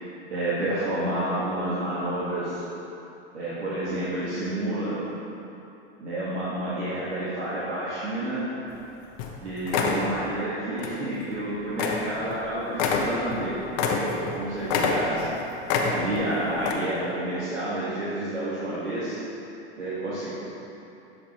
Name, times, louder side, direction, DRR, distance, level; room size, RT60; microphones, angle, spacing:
voice 1, 0.3-2.6 3.3-5.0 6.0-8.4 9.4-15.4 15.8-19.2 19.8-20.3, right 1 dB, 85° right, -10 dB, 1.6 m, -29 dB
sound 1, 8.8-8.9 9.2-9.4 9.7-10.1 10.8-11.0 11.3-11.4 11.8-12.1 12.3-12.4 12.7-14.4 14.7-15.3 15.7-16.2 16.6-16.7, left 5 dB, 55° left, 0.9 m, -26 dB
7.4 x 5.2 x 4.2 m, 2.9 s
hypercardioid pair, 95°, 34 cm